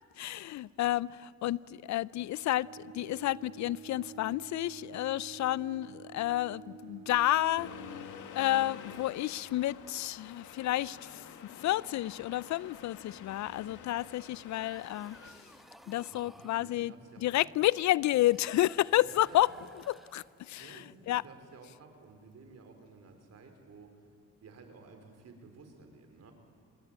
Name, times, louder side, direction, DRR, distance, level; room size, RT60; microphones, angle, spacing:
voice 1, 0.2-7.7 8.3-15.5 15.9-21.2, left 15 dB, 70° left, 0.5 m, -31 dB
Bowed string instrument, 2.0-8.7, right 7 dB, 90° right, 2.8 m, -50 dB
Accelerating revving vroom, 7.6-15.3, left 7 dB, 85° left, 2.2 m, -48 dB
sound 1, 14.3-16.7 18.1-20.6, equal, ahead, 1.5 m, -56 dB
voice 2, 16.1-17.3 18.9-19.5 20.4-24.1 24.4-26.3, right 4 dB, 55° right, 4.7 m, -54 dB
25.5 x 22.0 x 9.0 m
cardioid pair, 90°, 30 cm